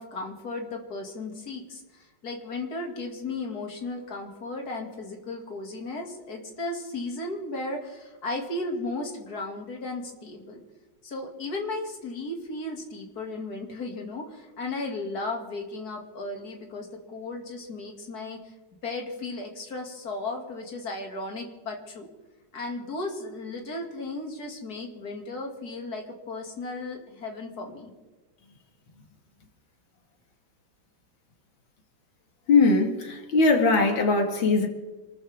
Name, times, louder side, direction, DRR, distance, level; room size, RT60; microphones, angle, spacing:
voice 1, 0.0-10.6 11.0-18.5 18.8-22.1 22.5-27.9, left 2 dB, 50° left, 3.0 m, -35 dB
voice 2, 32.5-34.7, left 3 dB, 85° left, 2.9 m, -20 dB
27.0 x 13.5 x 3.6 m
omnidirectional pair, 2.1 m